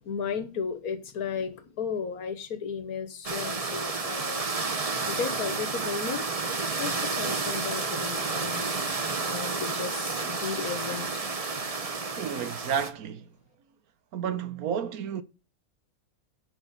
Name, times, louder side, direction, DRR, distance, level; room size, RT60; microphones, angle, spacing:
voice 1, 0.0-4.4 5.1-6.3 6.8-8.7 9.2-11.2, left 6 dB, 85° left, 1.7 m, -34 dB
sound 1, 3.2-12.9, right 4 dB, 30° right, 0.9 m, -31 dB
voice 2, 12.2-13.3 14.1-15.2, right 8 dB, 85° right, 1.3 m, -31 dB
10.5 x 4.9 x 6.6 m
omnidirectional pair, 1.5 m